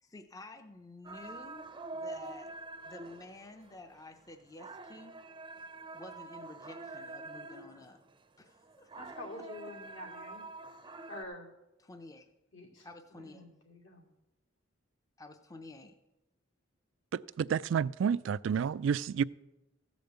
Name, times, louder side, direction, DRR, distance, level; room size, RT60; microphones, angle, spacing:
voice 1, 0.0-1.7 1.9-2.5 2.9-5.2 5.9-8.0 8.4-8.9 10.9-11.0 11.8-12.3 12.8-13.4 15.2-15.9, left 2 dB, 20° left, 0.6 m, -51 dB
sound 1, 1.0-8.1 8.5-11.2, right 3 dB, 25° right, 0.6 m, -46 dB
voice 2, 9.0-10.5 11.1-11.5 12.5-14.0, left 1 dB, 75° left, 2.6 m, -47 dB
voice 3, 17.1-19.2, right 7 dB, 70° right, 0.3 m, -30 dB
14.5 x 5.2 x 7.9 m
head